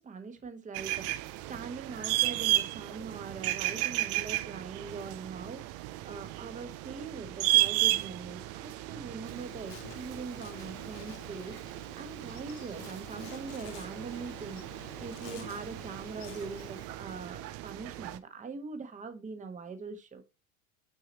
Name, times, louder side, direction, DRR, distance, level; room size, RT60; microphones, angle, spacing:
voice 1, 0.0-14.6 15.0-20.2, right 4 dB, 20° right, 1.2 m, -42 dB
sound 1, 0.7-18.2, right 17 dB, 40° right, 0.5 m, -34 dB
Insect, 9.2-16.8, left 7 dB, 70° left, 2.1 m, -50 dB
6.6 x 4.7 x 4.1 m
supercardioid pair, 115°, 40 cm